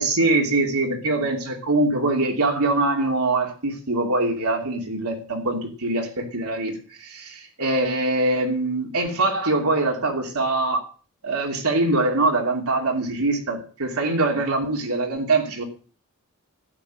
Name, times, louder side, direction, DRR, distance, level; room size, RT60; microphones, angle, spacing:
voice 1, 0.0-6.7 7.0-10.9 11.2-15.6, right 2 dB, 85° right, 2 dB, 2.9 m, -23 dB
12.0 x 8.6 x 6.3 m, 0.39 s
head